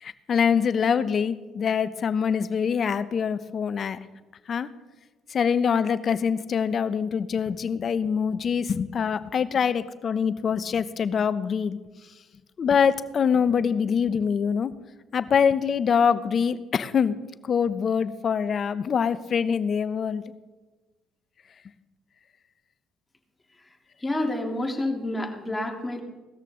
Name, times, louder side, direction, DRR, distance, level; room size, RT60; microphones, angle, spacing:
voice 1, 0.0-4.0 4.5-4.7 5.3-11.8 12.6-14.7 15.1-17.2 17.5-20.2, left 6 dB, 50° left, 15 dB, 0.9 m, -24 dB
voice 2, 24.0-26.0, left 1 dB, 20° left, 2 dB, 3.0 m, -28 dB
18.5 x 13.5 x 3.8 m, 1.2 s
hypercardioid pair, 60°, 0 cm